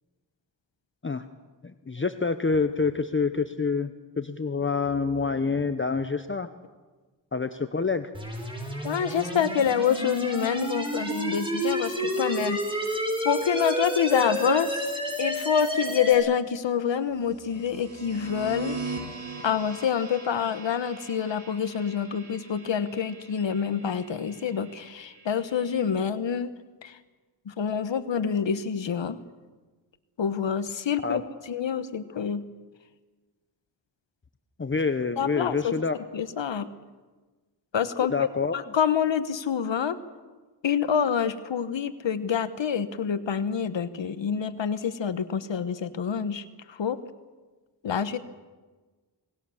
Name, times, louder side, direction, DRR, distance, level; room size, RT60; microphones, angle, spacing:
voice 1, 1.6-6.5 7.3-8.1 31.0-31.2 34.6-36.0 38.0-38.5, left 4 dB, 25° left, 9 dB, 0.9 m, -27 dB
sound 1, 8.1-16.1, right 1 dB, 10° right, 5.6 m, -30 dB
voice 2, 8.8-18.8 19.4-26.5 26.8-27.0 27.5-29.2 30.2-32.4 35.2-35.7 36.1-36.7 37.7-38.3 38.5-40.0 40.6-47.0 47.8-48.2, left 7 dB, 80° left, 12 dB, 1.2 m, -27 dB
sound 2, 17.2-26.0, right 4 dB, 45° right, 6.4 m, -41 dB
27.0 x 20.0 x 7.2 m, 1.3 s
wide cardioid pair, 95°, 44 cm